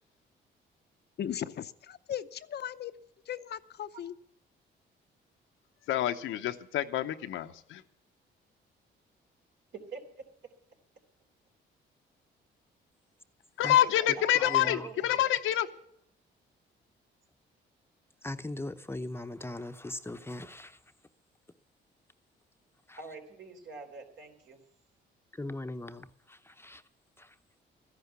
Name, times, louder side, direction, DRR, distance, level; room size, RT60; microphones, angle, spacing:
voice 1, 1.2-2.9 3.3-4.1, left 10 dB, 55° left, 0.7 m, -37 dB
voice 2, 5.9-7.8 13.6-15.7, left 12 dB, 90° left, 0.9 m, -27 dB
voice 3, 9.7-10.2 13.6-15.3 23.0-24.6, right 4 dB, 70° right, 3.5 m, -45 dB
voice 4, 14.5-14.9 18.2-20.8 22.9-23.0 25.3-26.8 27.2-27.3, left 2 dB, 10° left, 0.8 m, -39 dB
13.5 x 10.5 x 8.2 m
cardioid pair, 90°, 20 cm